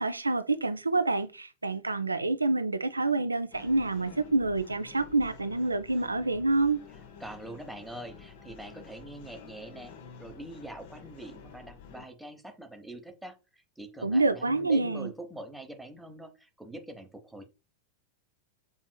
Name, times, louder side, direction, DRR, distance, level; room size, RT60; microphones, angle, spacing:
voice 1, 0.0-6.8 14.0-15.1, right 2 dB, 80° right, 0.4 m, -27 dB
sound 1, 3.5-12.1, left 6 dB, 50° left, 0.7 m, -50 dB
voice 2, 7.2-9.9 10.2-17.5, right 1 dB, 5° right, 0.8 m, -44 dB
6.1 x 3.5 x 2.2 m
figure-of-eight pair, 90°, 0 cm